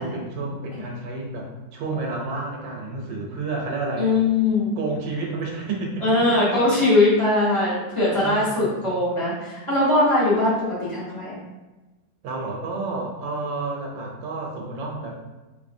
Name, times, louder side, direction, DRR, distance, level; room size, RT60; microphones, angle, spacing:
voice 1, 0.0-4.1 4.8-6.7 8.1-8.9 12.2-15.3, right 3 dB, 75° right, -1 dB, 1.4 m, -30 dB
voice 2, 4.0-4.7 6.0-11.4, left 2 dB, 20° left, -9 dB, 1.1 m, -21 dB
3.7 x 3.3 x 2.6 m, 1.1 s
omnidirectional pair, 2.1 m